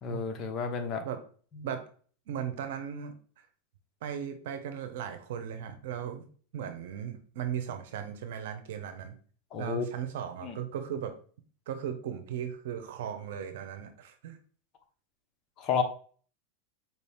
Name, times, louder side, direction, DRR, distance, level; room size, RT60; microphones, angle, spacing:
voice 1, 0.0-1.0 9.5-9.8 10.4-10.6 15.6-15.8, left 6 dB, 40° left, 5 dB, 0.8 m, -31 dB
voice 2, 2.3-3.1 4.0-6.3 6.5-9.2 9.6-11.2 11.7-14.4, right 9 dB, 75° right, 8 dB, 0.8 m, -37 dB
4.6 x 2.7 x 3.5 m, 0.43 s
supercardioid pair, 135°, 0 cm